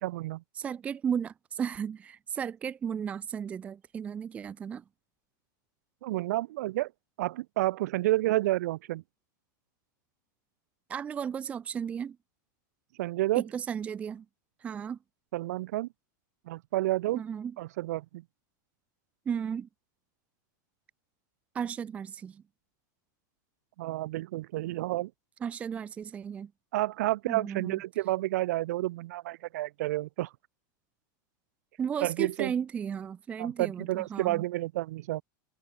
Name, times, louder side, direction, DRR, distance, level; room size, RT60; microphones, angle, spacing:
voice 1, 0.0-0.4 6.0-6.9 7.2-9.0 13.0-13.4 15.3-15.9 16.5-17.2 17.6-18.2 23.8-25.1 26.7-30.3 32.0-32.5 33.4-35.2, right 17 dB, 55° right, 2.0 m, -30 dB
voice 2, 0.5-4.8 10.9-12.2 13.3-14.3 14.6-15.0 17.1-17.6 19.2-19.7 21.5-22.4 25.4-26.5 27.3-27.8 31.8-34.4, right 7 dB, 15° right, 0.9 m, -34 dB
open air
supercardioid pair, 180°, 10 cm